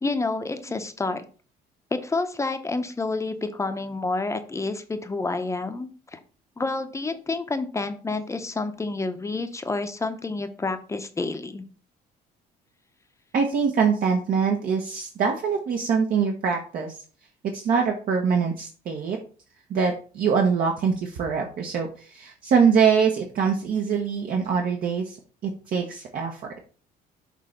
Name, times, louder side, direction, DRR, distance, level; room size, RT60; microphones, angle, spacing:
voice 1, 0.0-1.2 1.9-6.2 6.6-11.7, left 3 dB, 15° left, 9 dB, 0.8 m, -29 dB
voice 2, 13.3-16.9 17.5-19.2 19.7-25.2 25.4-26.4, right 6 dB, 60° right, 1 dB, 1.2 m, -23 dB
6.6 x 3.3 x 5.1 m, 0.38 s
cardioid pair, 110°, 17 cm